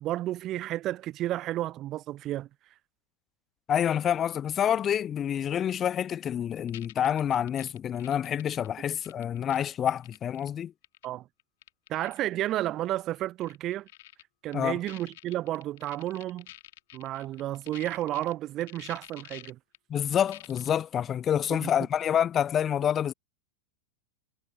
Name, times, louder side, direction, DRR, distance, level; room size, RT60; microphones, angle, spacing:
voice 1, 0.0-2.5 11.0-11.2 11.9-13.9 14.4-16.5 16.9-19.6 21.5-21.7, right 14 dB, 35° right, 0.3 m, -32 dB
voice 2, 3.7-10.7 14.5-14.8 19.9-23.1, left 9 dB, 25° left, 0.8 m, -27 dB
sound 1, 6.7-10.5 10.8-11.1 11.4-12.2 12.4-12.5 12.8-12.9 13.4-14.2 14.5-14.6 14.8-18.3 18.6-19.8 20.3-20.7, left 16 dB, 55° left, 1.7 m, -48 dB
figure-of-eight pair, 90°, 0 cm